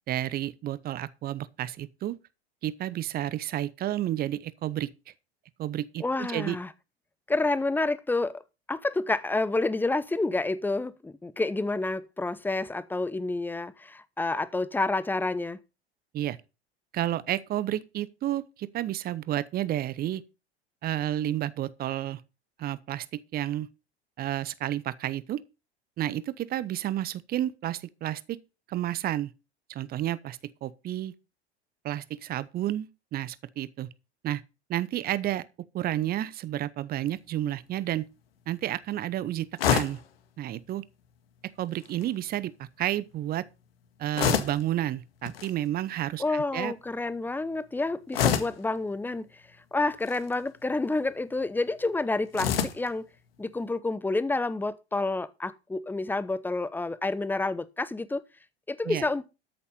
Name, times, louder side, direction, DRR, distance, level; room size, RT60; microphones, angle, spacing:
voice 1, 0.1-2.2 2.6-4.9 5.6-6.6 16.1-16.4 16.9-20.2 20.8-22.2 22.6-23.7 24.2-25.4 26.0-28.4 28.7-29.3 29.7-31.1 31.8-33.9 34.2-34.4 34.7-35.5 35.7-38.1 38.5-40.0 40.4-40.8 41.6-43.4 44.0-46.7 58.9-59.0, right 13 dB, 30° right, 0.9 m, -31 dB
voice 2, 6.0-6.7 7.3-8.4 8.7-15.6 46.2-49.4 49.7-53.1 53.4-58.2 58.7-59.3, left 2 dB, 5° left, 0.9 m, -29 dB
sound 1, 39.6-40.1 41.7-42.1 44.1-44.7 45.2-45.5 48.1-48.6 49.9-50.3 52.3-52.9, left 9 dB, 60° left, 1.8 m, -27 dB
13.0 x 7.0 x 5.3 m
figure-of-eight pair, 85°, 33 cm